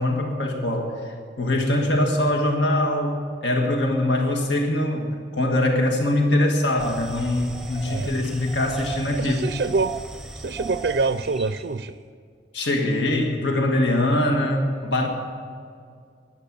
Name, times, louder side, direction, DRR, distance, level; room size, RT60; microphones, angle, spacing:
voice 1, 0.0-9.5 12.5-15.1, left 1 dB, 75° left, 2 dB, 1.7 m, -23 dB
sound 1, 6.8-11.8, right 3 dB, ahead, 0.7 m, -36 dB
voice 2, 9.1-10.0 10.4-11.9, right 4 dB, 60° right, 10 dB, 0.4 m, -25 dB
13.5 x 10.5 x 8.4 m, 2.2 s
head